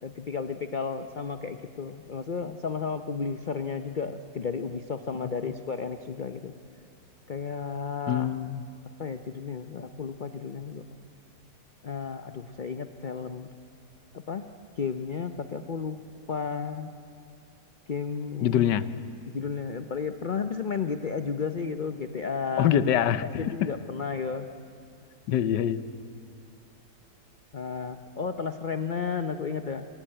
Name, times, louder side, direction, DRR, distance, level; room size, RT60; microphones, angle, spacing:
voice 1, 0.0-6.5 7.3-8.3 9.0-10.9 11.8-13.5 14.1-14.4 14.8-16.0 16.3-16.9 17.9-18.7 19.3-22.7 23.4-24.5 27.5-29.9, left 5 dB, 45° left, 9 dB, 0.6 m, -33 dB
voice 2, 8.1-8.6 18.4-18.9 22.6-23.5 25.3-25.8, left 10 dB, 85° left, 14 dB, 1.4 m, -24 dB
27.0 x 16.5 x 9.0 m, 2.7 s
omnidirectional pair, 1.8 m